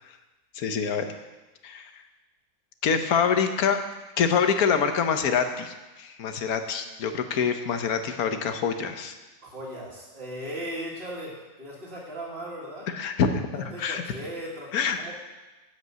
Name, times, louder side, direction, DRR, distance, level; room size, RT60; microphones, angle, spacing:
voice 1, 0.5-1.1 1.6-1.9 2.8-3.8 4.2-9.1 12.9-14.0 14.7-15.0, left 6 dB, 90° left, 7 dB, 1.4 m, -25 dB
voice 2, 9.4-12.9 13.5-15.1, equal, 40° right, -7 dB, 2.2 m, -37 dB
12.0 x 5.3 x 8.0 m, 1.2 s
omnidirectional pair, 1.5 m